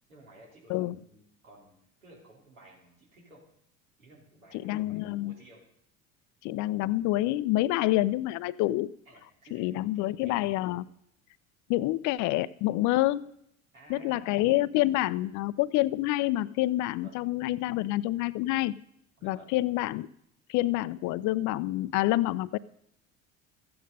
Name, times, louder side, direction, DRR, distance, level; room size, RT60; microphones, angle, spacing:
voice 1, 0.1-3.4 4.0-5.6 9.0-10.6 13.7-14.4 17.0-17.2 19.2-19.6, right 1 dB, 85° right, -2 dB, 3.4 m, -55 dB
voice 2, 4.6-5.3 6.4-8.9 9.5-10.8 11.7-13.3 13.9-18.7 19.2-20.1 20.5-22.6, left 16 dB, 50° left, 18 dB, 0.5 m, -27 dB
13.5 x 8.8 x 5.3 m, 0.73 s
hypercardioid pair, 65°, 40 cm